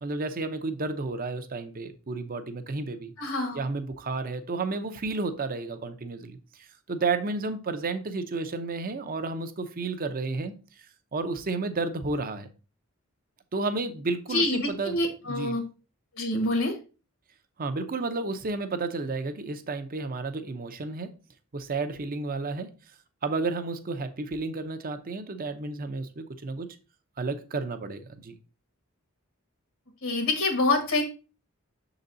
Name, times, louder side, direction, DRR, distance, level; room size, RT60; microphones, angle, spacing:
voice 1, 0.0-3.1 3.5-10.6 11.1-12.5 13.5-15.0 15.2-15.6 17.6-21.1 21.5-22.7 23.2-26.7 27.2-28.3, right 3 dB, 45° right, 0.7 m, -32 dB
voice 2, 3.2-3.6 14.3-15.6 16.1-16.7 30.0-31.0, left 2 dB, 75° left, 1.6 m, -26 dB
6.4 x 4.0 x 3.9 m
head